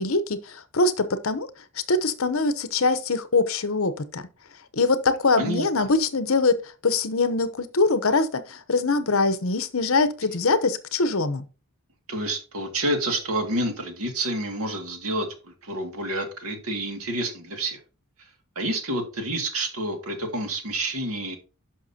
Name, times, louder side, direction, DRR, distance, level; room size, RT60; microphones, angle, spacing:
voice 1, 0.0-1.5 1.7-4.2 4.7-11.4, left 3 dB, 65° left, 0.9 m, -23 dB
voice 2, 12.1-17.8 18.6-21.4, right 1 dB, 75° right, 2.2 m, -28 dB
11.5 x 5.9 x 2.8 m
head